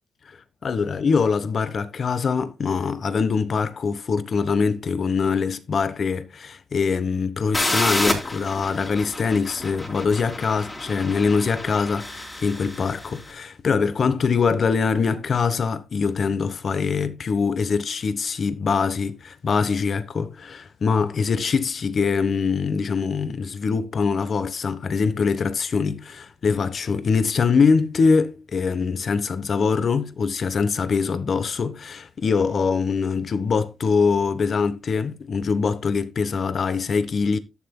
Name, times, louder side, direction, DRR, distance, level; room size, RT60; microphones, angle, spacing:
voice 1, 0.6-37.4, left 5 dB, 45° left, 1.2 m, -23 dB
sound 1, 7.5-13.2, left 1 dB, 15° left, 3.8 m, -29 dB
12.0 x 10.0 x 2.2 m
cardioid pair, 105°, 0 cm